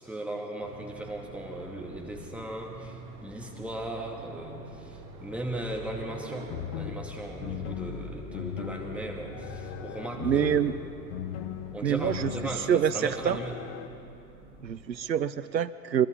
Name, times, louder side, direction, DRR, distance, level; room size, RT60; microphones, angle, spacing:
voice 1, 0.0-10.8 11.7-13.5, right 1 dB, 5° right, 0 dB, 2.5 m, -37 dB
sound 1, 0.6-15.0, right 2 dB, 40° right, 3.5 m, -46 dB
sound 2, 6.5-13.9, left 10 dB, 45° left, 1.0 m, -39 dB
voice 2, 10.2-10.7 11.8-13.4 14.6-16.1, right 9 dB, 90° right, 14 dB, 0.6 m, -26 dB
25.0 x 22.5 x 5.4 m, 2.8 s
figure-of-eight pair, 90°, 50 cm